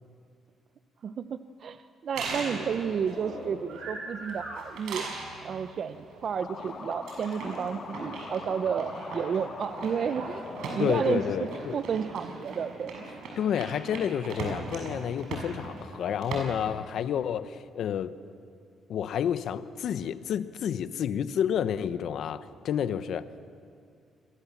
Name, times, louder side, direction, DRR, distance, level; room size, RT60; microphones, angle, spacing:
voice 1, 1.0-5.1 5.4-10.5 10.7-11.5 11.7-13.0, right 7 dB, 55° right, 10 dB, 0.8 m, -32 dB
sound 1, 2.2-16.4, right 3 dB, 80° right, 6.7 m, -39 dB
sound 2, 6.4-11.6, left 4 dB, 45° left, 3.2 m, -42 dB
voice 2, 10.8-11.8 13.4-18.1 18.9-23.3, left 9 dB, 70° left, 12 dB, 1.0 m, -30 dB
27.5 x 22.5 x 7.4 m, 2.4 s
cardioid pair, 90°, 0 cm